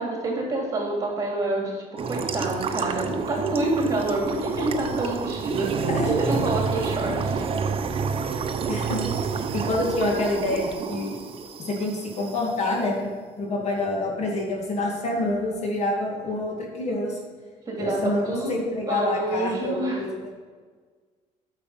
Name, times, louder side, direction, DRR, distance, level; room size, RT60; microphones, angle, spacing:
voice 1, 0.0-7.4 17.7-18.5 18.9-20.0, right 2 dB, 25° right, -1 dB, 3.2 m, -27 dB
sound 1, 2.0-12.4, right 5 dB, 40° right, 0.8 m, -29 dB
voice 2, 8.7-9.1 9.5-11.2 11.7-13.1 13.4-17.2 17.8-20.2, left 2 dB, 50° left, -1 dB, 2.3 m, -27 dB
9.2 x 6.6 x 5.8 m, 1.6 s
cardioid pair, 110°, 14 cm